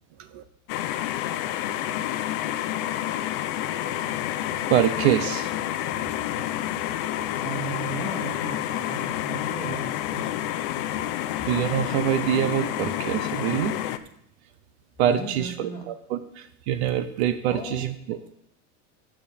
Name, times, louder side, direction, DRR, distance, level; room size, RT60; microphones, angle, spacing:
sound 1, 0.7-14.0, left 13 dB, 40° left, 0.6 m, -29 dB
voice 1, 4.7-5.5 11.5-13.7 15.0-18.2, right 10 dB, 55° right, 11 dB, 0.8 m, -25 dB
voice 2, 7.4-10.3 15.1-15.8 17.5-17.8, right 2 dB, 10° left, 0 dB, 2.1 m, -35 dB
12.0 x 5.0 x 7.3 m, 0.75 s
supercardioid pair, 160°, 39 cm